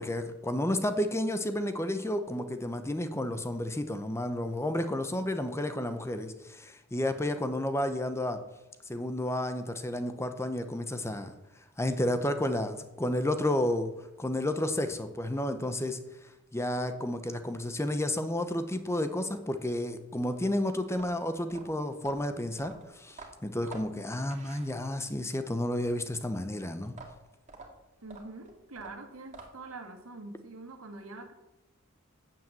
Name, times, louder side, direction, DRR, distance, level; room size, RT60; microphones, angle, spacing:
voice 1, 0.0-8.4 8.9-11.3 11.8-13.9 14.2-16.0 16.5-22.7 23.0-26.9, left 1 dB, 15° left, 9 dB, 0.8 m, -31 dB
sound 1, 20.9-25.2 26.8-29.8, right 3 dB, 35° right, 2.1 m, -49 dB
voice 2, 28.0-31.3, right 2 dB, 90° right, 5 dB, 1.9 m, -45 dB
9.0 x 7.5 x 7.6 m, 0.96 s
head